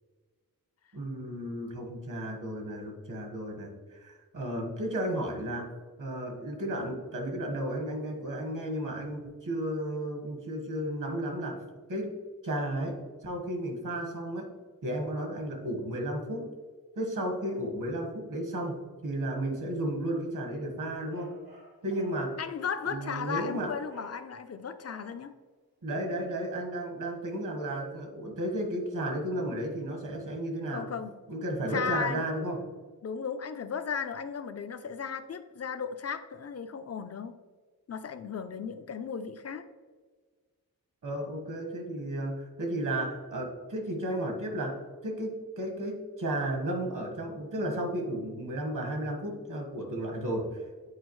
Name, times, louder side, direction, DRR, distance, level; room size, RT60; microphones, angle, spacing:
voice 1, 0.9-5.7 6.0-11.6 11.9-12.2 12.4-13.0 13.2-14.5 14.8-16.4 17.0-21.4 21.8-22.4 22.8-23.7 25.8-30.9 31.3-32.6 41.0-44.8 45.0-50.9, right 1 dB, 60° right, 2 dB, 1.4 m, -33 dB
sound 1, 20.9-22.3 23.0-24.2 24.8-25.3, right 3 dB, 85° right, 1.6 m, -55 dB
voice 2, 22.4-25.3 30.7-31.1 31.7-32.2 33.0-37.3 37.9-39.6, left 6 dB, 45° left, 10 dB, 0.5 m, -35 dB
8.2 x 4.5 x 3.1 m, 1.4 s
wide cardioid pair, 130°, 36 cm